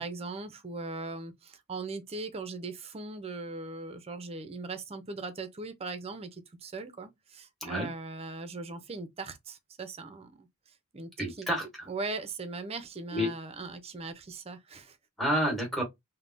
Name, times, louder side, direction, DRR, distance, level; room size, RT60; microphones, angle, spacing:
voice 1, 0.0-11.5 11.9-15.0, right 3 dB, 30° right, 0.5 m, -39 dB
voice 2, 11.2-11.8 13.1-13.3 15.2-15.8, equal, ahead, 1.2 m, -29 dB
3.3 x 2.1 x 2.5 m
head